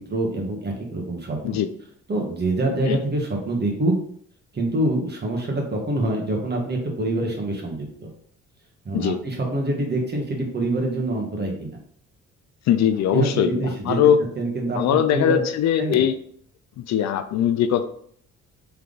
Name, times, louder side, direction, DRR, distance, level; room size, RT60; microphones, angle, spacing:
voice 1, 0.0-1.6 2.1-3.9 4.5-8.1 8.8-11.8 13.1-15.4 15.8-16.1, right 2 dB, 35° right, -1 dB, 1.4 m, -25 dB
voice 2, 12.7-14.2 14.7-16.1 16.8-17.8, left 9 dB, 65° left, 10 dB, 0.4 m, -21 dB
3.5 x 3.3 x 3.9 m, 0.63 s
cardioid pair, 90°, 30 cm